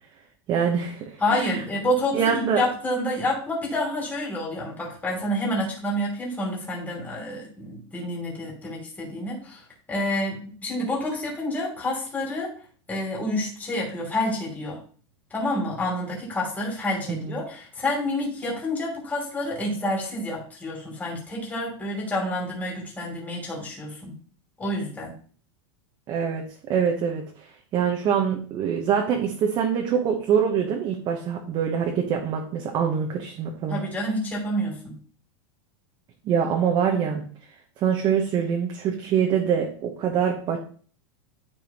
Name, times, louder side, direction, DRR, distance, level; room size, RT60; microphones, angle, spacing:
voice 1, 0.5-1.6 2.1-2.6 17.1-17.3 26.1-33.8 36.2-37.2 37.8-40.6, right 7 dB, 30° right, 2 dB, 1.1 m, -24 dB
voice 2, 1.2-9.6 9.9-12.5 12.9-14.8 15.3-24.1 24.6-25.1 33.7-35.0, left 1 dB, 10° left, -3 dB, 2.9 m, -28 dB
12.5 x 4.7 x 3.0 m, 0.43 s
supercardioid pair, 160°, 15 cm